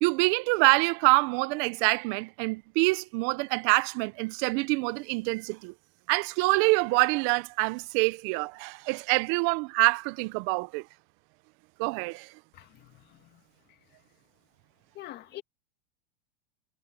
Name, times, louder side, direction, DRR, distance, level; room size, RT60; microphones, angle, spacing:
voice 1, 0.0-5.7 6.1-10.8 11.8-12.3, right 26 dB, 35° right, 0.8 m, -26 dB
voice 2, 12.5-13.4 14.9-15.4, left 15 dB, 30° left, 2.4 m, -45 dB
supercardioid pair, 140°, 33 cm